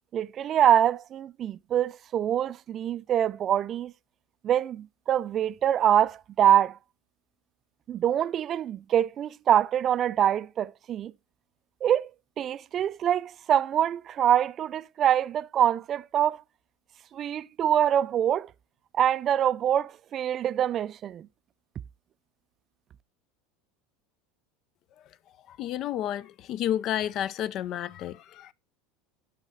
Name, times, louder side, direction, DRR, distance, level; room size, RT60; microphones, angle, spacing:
voice 1, 0.1-3.9 4.4-6.8 7.9-11.1 11.8-12.1 12.4-16.4 17.1-18.5 18.9-21.3, right 10 dB, 40° right, 0.3 m, -25 dB
voice 2, 25.5-28.5, left 11 dB, 50° left, 0.4 m, -31 dB
6.5 x 5.6 x 3.9 m
supercardioid pair, 110°, 0 cm